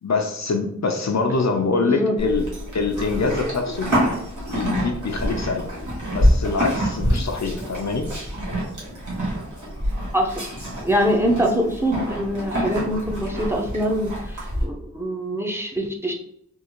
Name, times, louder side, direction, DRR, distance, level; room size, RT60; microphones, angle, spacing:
voice 1, 0.0-2.5 2.7-3.9 4.5-5.7 6.1-8.1, left 4 dB, 65° left, 3 dB, 0.6 m, -24 dB
voice 2, 1.8-2.2 10.1-10.5 10.8-16.1, equal, 10° right, 1 dB, 0.6 m, -24 dB
Livestock farm animals working animals, 2.2-14.6, equal, 80° right, 1.4 m, -26 dB
3.6 x 2.4 x 3.0 m, 0.74 s
wide cardioid pair, 55°, 30 cm